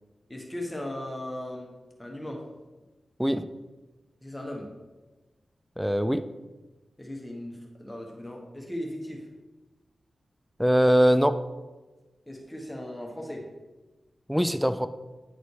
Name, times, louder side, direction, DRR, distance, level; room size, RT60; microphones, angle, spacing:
voice 1, 0.3-1.7 2.0-2.5 4.2-4.7 7.0-9.3 12.3-13.5, left 1 dB, 15° left, 0 dB, 1.2 m, -37 dB
voice 2, 3.2-3.5 5.8-6.3 10.6-11.4 14.3-14.9, equal, ahead, 12 dB, 0.3 m, -22 dB
9.5 x 4.0 x 3.2 m, 1.2 s
cardioid pair, 50°, 0 cm